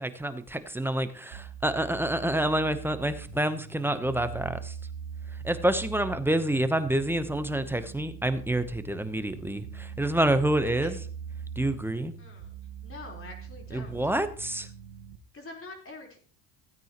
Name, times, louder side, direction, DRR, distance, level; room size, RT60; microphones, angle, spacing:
voice 1, 0.0-4.8 5.4-11.0 11.6-12.1 13.7-14.7, right 1 dB, 5° right, 11 dB, 0.8 m, -28 dB
sound 1, 1.3-15.2, right 7 dB, 80° right, 1.1 m, -42 dB
voice 2, 10.6-10.9 12.2-12.5 12.8-14.0 15.3-16.3, left 2 dB, 25° left, 2 dB, 4.0 m, -45 dB
16.0 x 9.1 x 3.0 m, 0.42 s
supercardioid pair, 105°, 48 cm